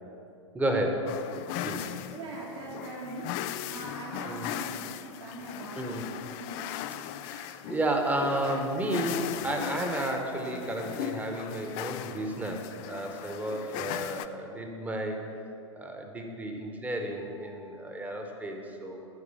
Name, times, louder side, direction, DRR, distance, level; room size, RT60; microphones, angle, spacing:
voice 1, 0.5-1.1 1.6-1.9 4.2-4.5 5.7-6.0 7.2-15.3 15.7-19.1, right 1 dB, 10° right, 3 dB, 1.1 m, -32 dB
sound 1, 1.1-14.3, left 11 dB, 35° left, 0.4 m, -38 dB
voice 2, 2.1-6.6, right 1 dB, 60° right, -3 dB, 2.2 m, -41 dB
14.5 x 4.8 x 7.1 m, 2.7 s
figure-of-eight pair, 100°, 16 cm